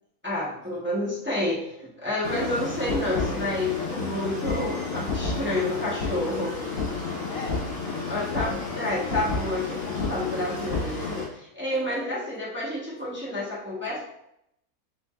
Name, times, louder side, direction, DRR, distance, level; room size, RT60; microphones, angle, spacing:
voice 1, 0.2-6.6 8.1-14.0, left 1 dB, 10° right, -7 dB, 0.8 m, -29 dB
sound 1, 2.2-11.2, left 4 dB, 45° left, 1.3 m, -30 dB
voice 2, 7.1-9.1 11.7-12.3 12.9-13.1, left 3 dB, 70° left, 1 dB, 1.2 m, -42 dB
4.4 x 4.4 x 2.4 m, 0.79 s
omnidirectional pair, 1.6 m